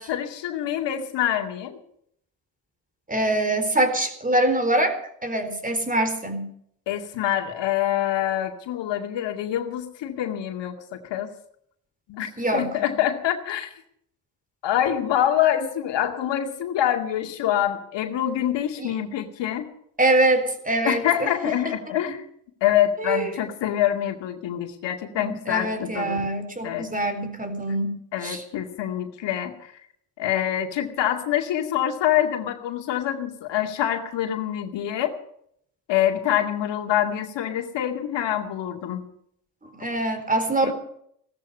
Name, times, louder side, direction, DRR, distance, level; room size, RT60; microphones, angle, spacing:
voice 1, 0.0-1.8 6.9-11.3 12.1-13.7 14.6-19.7 20.8-22.3 22.6-26.2 26.6-26.9 28.1-29.7 30.2-35.1 35.9-39.0 40.6-40.7, left 11 dB, 75° left, 5 dB, 2.3 m, -25 dB
voice 2, 3.1-5.0 5.2-6.5 12.4-12.7 18.8-18.9 20.0-21.3 23.0-23.3 25.2-28.0 28.2-28.4 39.8-40.7, right 2 dB, 20° right, 9 dB, 4.1 m, -24 dB
17.0 x 13.5 x 5.5 m, 0.68 s
cardioid pair, 80°, 43 cm